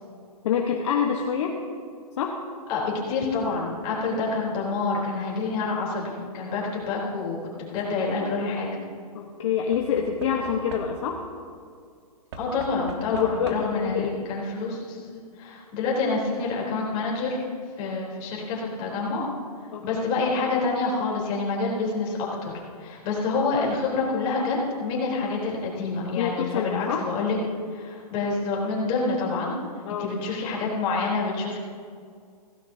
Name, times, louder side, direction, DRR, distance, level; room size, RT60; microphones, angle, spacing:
voice 1, 0.4-1.6 2.2-2.4 9.1-11.2 13.1-14.2 19.7-20.1 26.1-27.1 29.8-30.1, left 7 dB, 50° left, 1 dB, 1.2 m, -26 dB
voice 2, 2.7-8.7 12.4-15.0 15.4-17.4 17.8-19.3 19.8-22.5 22.8-27.4 27.7-29.5 30.0-31.6, left 3 dB, 25° left, -4 dB, 3.6 m, -27 dB
Knock / Wood, 7.5-8.0 9.7-11.3 12.3-13.9 14.9-15.0 15.3-15.4, right 3 dB, 45° right, 1.5 m, -42 dB
16.5 x 16.0 x 2.8 m, 2.2 s
hypercardioid pair, 160°, 20 cm